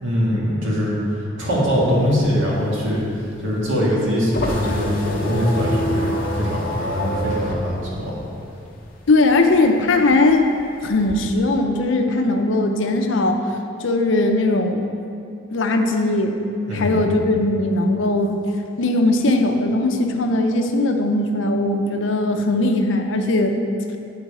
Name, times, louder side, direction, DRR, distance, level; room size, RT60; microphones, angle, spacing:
voice 1, 0.0-8.2 16.7-17.1, equal, 75° right, -5 dB, 1.8 m, -22 dB
sound 1, 1.9-9.0 9.4-11.1, equal, 45° left, 0.9 m, -27 dB
voice 2, 9.1-10.5 10.8-13.4 13.8-14.8 15.5-16.3 16.7-18.4 18.8-23.5, left 2 dB, 70° left, 4 dB, 0.6 m, -19 dB
8.7 x 3.9 x 4.8 m, 2.5 s
head